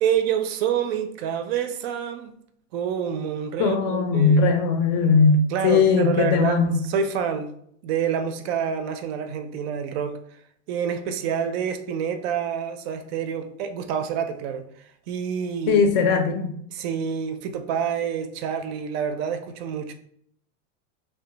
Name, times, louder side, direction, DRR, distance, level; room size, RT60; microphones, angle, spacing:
voice 1, 0.0-2.3 2.7-4.5 5.5-7.5 7.8-10.2 10.7-15.8 16.7-19.9, right 8 dB, 55° right, 0.5 m, -27 dB
voice 2, 3.6-6.8 15.7-16.5, left 5 dB, 45° left, 0.5 m, -19 dB
2.3 x 2.2 x 3.8 m
supercardioid pair, 145°, 36 cm